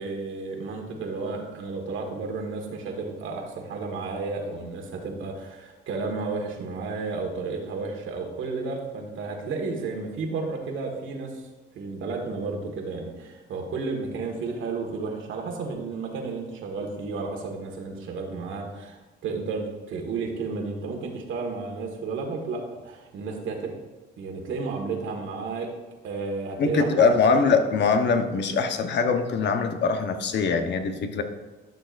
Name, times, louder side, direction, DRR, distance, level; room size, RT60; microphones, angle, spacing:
voice 1, 0.0-11.5 11.7-23.7 24.2-25.7 26.0-27.1 27.5-27.6, right 4 dB, 80° right, 2 dB, 1.8 m, -32 dB
voice 2, 26.6-31.2, left 5 dB, 60° left, 6 dB, 1.0 m, -22 dB
12.0 x 6.6 x 2.6 m, 1.2 s
cardioid pair, 90°, 20 cm